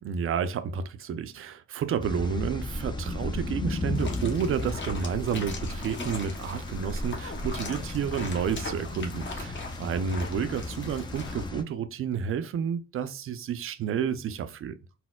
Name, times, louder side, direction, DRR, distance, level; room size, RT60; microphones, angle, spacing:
voice 1, 0.0-14.8, right 7 dB, 45° right, 0.4 m, -30 dB
sound 1, 2.0-11.6, left 2 dB, 15° left, 0.4 m, -34 dB
sound 2, 3.9-11.4, left 3 dB, 40° left, 0.9 m, -41 dB
4.1 x 2.1 x 2.2 m
cardioid pair, 120°, 30 cm